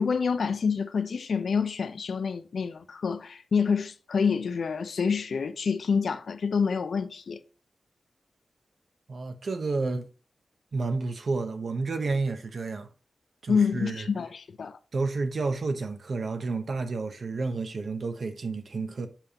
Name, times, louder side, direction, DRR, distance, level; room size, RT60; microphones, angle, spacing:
voice 1, 0.0-7.4 13.5-14.8, left 5 dB, 80° left, 0.5 m, -27 dB
voice 2, 9.1-10.1 10.7-12.9 13.4-14.1 14.9-19.1, right 3 dB, 65° right, 0.9 m, -30 dB
7.4 x 5.1 x 2.9 m
cardioid pair, 70°, 0 cm